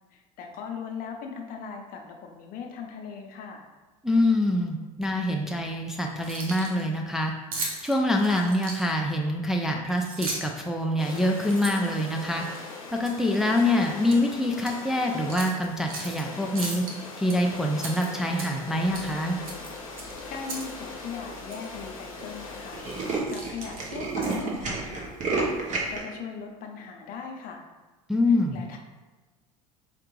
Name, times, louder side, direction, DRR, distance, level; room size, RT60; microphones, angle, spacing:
voice 1, 0.1-3.6 20.0-22.8 23.3-25.5 25.9-27.6 28.3-28.8, left 6 dB, 55° left, 3 dB, 0.7 m, -39 dB
voice 2, 4.0-7.3 7.8-12.5 12.9-16.8 17.2-19.4 28.1-28.6, left 1 dB, ahead, 0 dB, 0.4 m, -25 dB
Keys jangling, 6.1-6.8 7.5-9.1 9.9-10.6 11.0-12.6 13.0-13.2 13.6-14.2 14.6-14.8 15.3-16.2 16.6-17.4 17.8-18.7 18.9-19.1 19.5-20.7 21.0-21.1 21.5-21.7 22.3-22.5 22.8-24.6, right 3 dB, 90° right, 0.8 m, -37 dB
sound 1, 11.0-23.2, left 3 dB, 90° left, 0.7 m, -41 dB
Tools, 19.9-20.3 21.0-21.1 21.3-21.4 21.6-21.8 22.1-22.2 22.5-26.0, right 3 dB, 45° right, 1.0 m, -30 dB
4.5 x 2.4 x 3.1 m, 1.2 s
hypercardioid pair, 80°, 18 cm